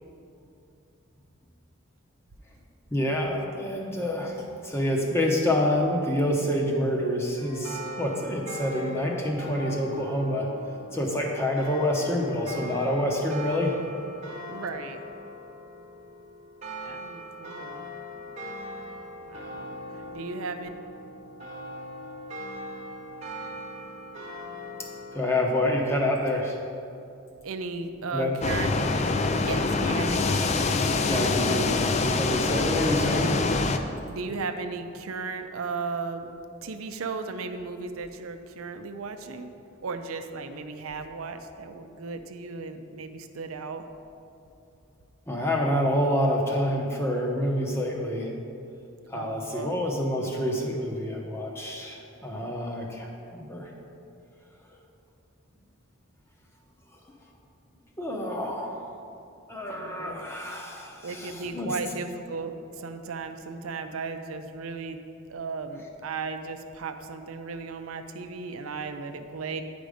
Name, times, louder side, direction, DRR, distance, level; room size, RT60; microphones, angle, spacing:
voice 1, 2.9-10.5 10.9-13.8 25.1-26.6 28.1-28.3 31.1-33.3 45.3-48.3 49.1-53.7 58.0-58.9 59.5-61.7, left 1 dB, 10° left, 0 dB, 0.8 m, -27 dB
sound 1, 7.4-25.4, equal, 35° right, 1.0 m, -40 dB
voice 2, 14.5-15.0 16.8-17.9 19.2-19.8 20.1-20.7 27.4-28.8 29.4-30.3 34.1-36.3 36.6-39.5 39.8-43.9 49.1-49.7 59.7-60.2 61.0-65.0 65.3-69.6, right 4 dB, 90° right, 8 dB, 0.5 m, -35 dB
sound 2, 28.4-33.8, left 3 dB, 30° left, 0.3 m, -25 dB
9.2 x 5.2 x 4.9 m, 2.6 s
head